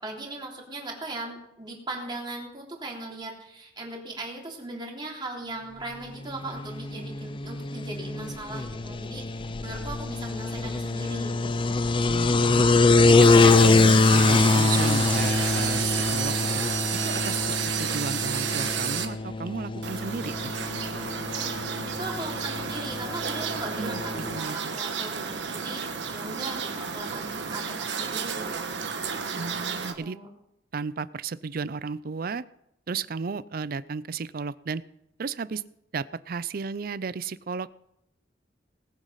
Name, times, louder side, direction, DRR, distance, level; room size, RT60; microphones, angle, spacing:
voice 1, 0.0-11.8 21.4-25.8 26.1-28.5 29.5-30.3, right 2 dB, 25° right, -1 dB, 3.2 m, -38 dB
sound 1, 6.3-24.4, left 3 dB, 30° left, 0.5 m, -24 dB
voice 2, 12.1-12.7 13.1-16.6 16.9-20.5 23.8-24.8 29.3-30.2 30.7-32.4 32.9-34.8 35.2-35.6 35.9-37.7, right 5 dB, 55° right, 18 dB, 0.5 m, -34 dB
sound 2, 13.2-19.1 19.8-29.9, right 6 dB, 80° right, 1.4 m, -31 dB
19.5 x 8.2 x 5.7 m, 0.81 s
head